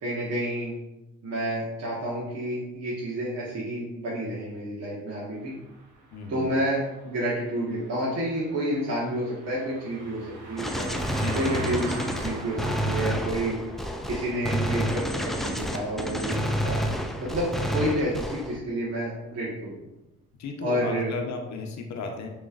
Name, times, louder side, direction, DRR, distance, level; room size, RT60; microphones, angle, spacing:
voice 1, 0.0-0.7 1.2-5.5 6.3-10.9 11.3-11.9 12.2-13.6 14.1-16.8 17.2-19.7 20.6-21.1, right 1 dB, 55° right, -6 dB, 1.3 m, -29 dB
Car passing by, 5.4-17.3 17.6-17.9, right 3 dB, 85° right, 1.2 m, -43 dB
voice 2, 6.1-6.5 11.1-11.8 17.2-17.4 20.4-22.3, left 4 dB, 65° left, 3 dB, 0.8 m, -35 dB
Gunshot gunfire, 10.6-18.6, equal, ahead, 0.3 m, -29 dB
6.1 x 3.2 x 2.5 m, 0.98 s
cardioid pair, 90°, 30 cm